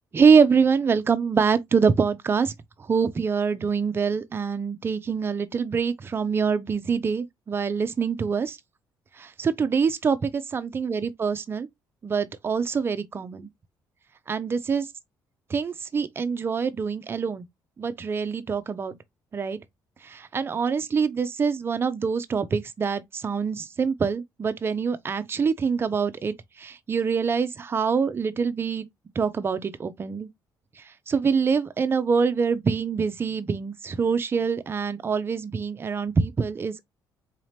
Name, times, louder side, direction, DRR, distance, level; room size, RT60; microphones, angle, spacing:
voice 1, 0.1-2.5 2.8-8.6 9.2-11.7 12.0-13.5 14.3-14.9 15.5-17.4 17.8-19.0 19.3-19.6 20.0-28.9 29.2-30.3 30.8-36.8, right 5 dB, 30° right, 0.5 m, -25 dB
4.0 x 2.8 x 3.2 m
cardioid pair, 110°, 8 cm